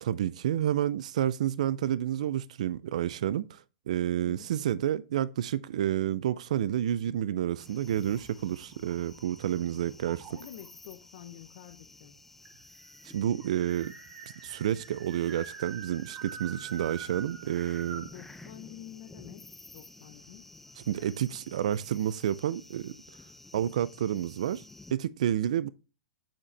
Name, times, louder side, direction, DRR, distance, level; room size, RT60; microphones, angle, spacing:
voice 1, 0.0-10.3 13.1-13.9 14.4-18.1 20.8-23.0 23.5-24.6 24.9-25.7, right 11 dB, 70° right, 0.3 m, -30 dB
sound 1, 7.6-24.9, left 2 dB, 5° left, 0.4 m, -53 dB
sound 2, 8.0-9.5 10.0-10.7 11.7-11.8 12.0-12.1 12.5-18.2, right 7 dB, 35° right, 1.1 m, -45 dB
voice 2, 10.3-12.2 18.1-20.5, left 12 dB, 60° left, 0.7 m, -48 dB
7.2 x 4.9 x 3.2 m
hypercardioid pair, 135°, 4 cm